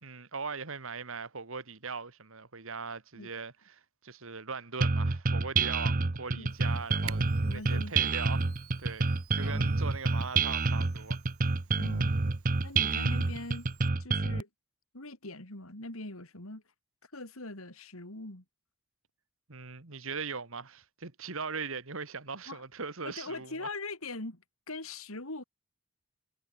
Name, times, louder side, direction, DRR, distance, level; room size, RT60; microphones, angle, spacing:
voice 1, 0.0-7.2 7.5-8.5 8.8-11.2 19.5-23.7, right 4 dB, 65° right, 1.9 m, -40 dB
sound 1, 4.8-14.4, right 3 dB, 40° right, 0.9 m, -28 dB
Camera, 6.5-13.9, right 7 dB, 85° right, 3.1 m, -52 dB
voice 2, 7.4-7.9 9.4-9.7 11.7-12.2 12.6-13.7 14.0-14.5 14.9-16.6 17.1-18.4 22.5-22.6 23.0-24.4 24.7-25.4, left 2 dB, 75° left, 4.1 m, -41 dB
head